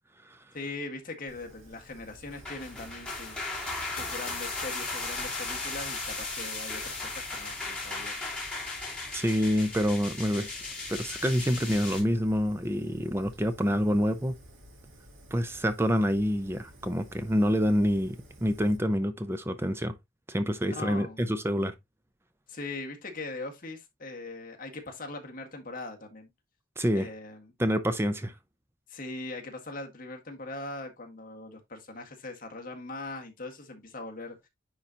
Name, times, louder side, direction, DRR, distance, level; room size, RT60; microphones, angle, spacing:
voice 1, 0.5-3.5 3.9-8.2 13.7-13.8 20.7-21.2 22.5-26.3 26.9-27.5 28.9-34.5, left 2 dB, 45° left, 1.6 m, -41 dB
Fire, 1.3-18.8, equal, 90° right, 2.7 m, -52 dB
sound 1, 2.3-12.0, left 3 dB, 5° left, 3.0 m, -36 dB
voice 2, 9.1-10.5 10.9-14.4 15.3-19.9 20.3-21.7 26.8-27.1 27.6-28.3, equal, 10° right, 0.6 m, -27 dB
9.9 x 4.0 x 2.9 m
head